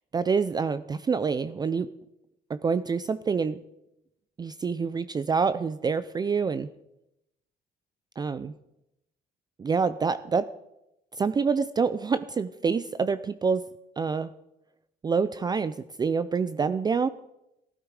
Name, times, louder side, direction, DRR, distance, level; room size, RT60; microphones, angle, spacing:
voice 1, 0.1-1.9 2.5-3.6 4.4-6.7 8.2-8.5 9.6-10.5 11.2-13.6 14.0-14.3 15.0-17.1, right 5 dB, 25° right, 14 dB, 0.5 m, -26 dB
15.0 x 12.5 x 4.8 m, 0.86 s
cardioid pair, 110°, 17 cm